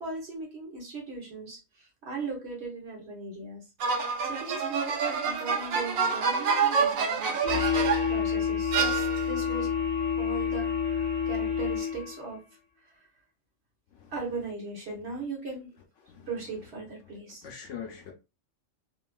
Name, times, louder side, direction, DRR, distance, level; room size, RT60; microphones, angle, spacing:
voice 1, 0.0-9.7 10.2-12.4 12.8-13.0 14.1-15.7 16.3-17.5, right 3 dB, 55° right, 1.2 m, -39 dB
sound 1, 3.8-8.2 8.7-9.5, right 6 dB, 80° right, 1.0 m, -27 dB
sound 2, 7.4-12.3, left 7 dB, 30° left, 0.5 m, -28 dB
voice 2, 17.4-18.1, left 7 dB, 70° left, 0.9 m, -42 dB
2.9 x 2.4 x 2.3 m
omnidirectional pair, 1.4 m